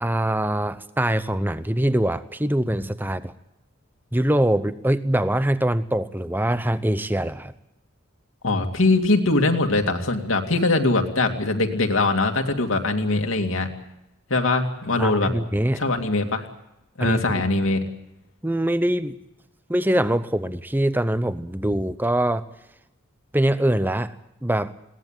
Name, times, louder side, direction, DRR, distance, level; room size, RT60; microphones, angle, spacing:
voice 1, 0.0-3.3 4.1-7.5 15.0-15.8 17.0-17.2 18.4-19.2 19.7-22.4 23.3-24.1 24.4-24.7, right 1 dB, 10° right, 13 dB, 0.8 m, -23 dB
voice 2, 8.4-13.7 14.3-15.3 15.8-16.5 17.0-17.8, left 2 dB, 70° left, 4 dB, 2.5 m, -22 dB
21.5 x 18.0 x 9.1 m, 0.87 s
head